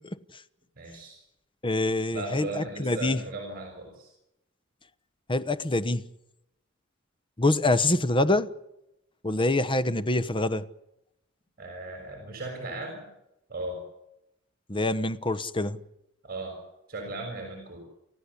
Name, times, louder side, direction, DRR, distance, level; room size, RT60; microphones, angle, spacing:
voice 1, 0.8-1.2 2.1-4.1 11.6-13.1 13.5-13.8 16.2-16.6 16.9-17.8, right 2 dB, 50° right, 6.6 m, -37 dB
voice 2, 1.6-3.2 5.3-6.0 7.4-8.5 9.2-10.6 14.7-15.8, left 2 dB, 25° left, 1.1 m, -25 dB
29.5 x 14.5 x 8.5 m
head